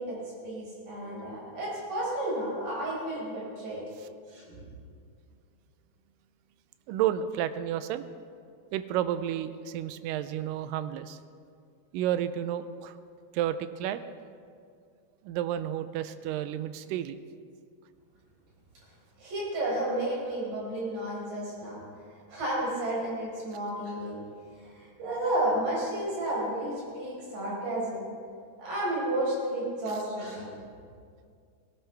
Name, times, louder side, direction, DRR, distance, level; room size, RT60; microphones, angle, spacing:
voice 1, 0.0-3.8 4.3-4.6 19.2-21.8 22.3-24.2 24.6-28.0 28.6-30.5, right 1 dB, 65° right, -5 dB, 6.3 m, -32 dB
voice 2, 6.9-8.1 8.7-11.2 11.9-13.0 13.3-14.1 15.2-17.2 29.9-30.0, right 11 dB, 80° right, 12 dB, 2.0 m, -31 dB
18.5 x 16.5 x 3.4 m, 2.2 s
omnidirectional pair, 4.3 m